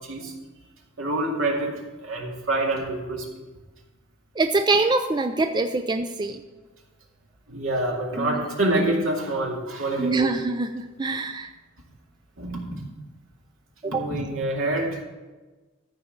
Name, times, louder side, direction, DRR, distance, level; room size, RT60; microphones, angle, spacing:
voice 1, 1.0-1.7 2.0-3.3 7.5-10.4 12.4-12.6 13.8-15.0, right 2 dB, 70° right, -1 dB, 2.3 m, -26 dB
voice 2, 4.4-6.4 8.2-8.5 10.0-11.5 13.8-14.1, right 3 dB, 20° right, 7 dB, 0.4 m, -24 dB
14.0 x 4.8 x 7.3 m, 1.2 s
head